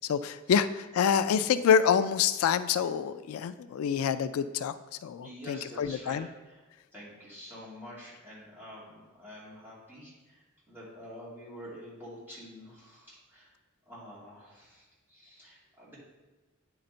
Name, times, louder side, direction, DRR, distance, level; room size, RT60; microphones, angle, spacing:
voice 1, 0.1-4.7 5.0-6.3, left 7 dB, 90° left, 13 dB, 0.3 m, -27 dB
voice 2, 5.2-6.2 6.4-6.7 6.9-13.5 13.9-16.0, equal, 10° right, -8 dB, 2.4 m, -47 dB
9.5 x 3.9 x 4.4 m, 1.2 s
head